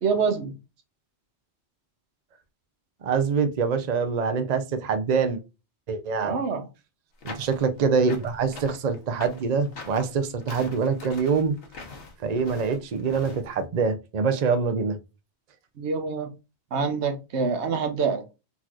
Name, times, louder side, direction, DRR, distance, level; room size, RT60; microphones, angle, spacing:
voice 1, 0.0-0.5 6.2-6.6 15.8-16.3 16.7-18.2, right 5 dB, 80° right, 1.1 m, -26 dB
voice 2, 3.0-5.4 5.9-6.4 7.2-11.6 12.2-15.0, right 5 dB, 45° right, 0.6 m, -25 dB
sound 1, 7.2-13.4, left 3 dB, 60° left, 1.1 m, -42 dB
4.0 x 3.0 x 2.4 m
omnidirectional pair, 1.1 m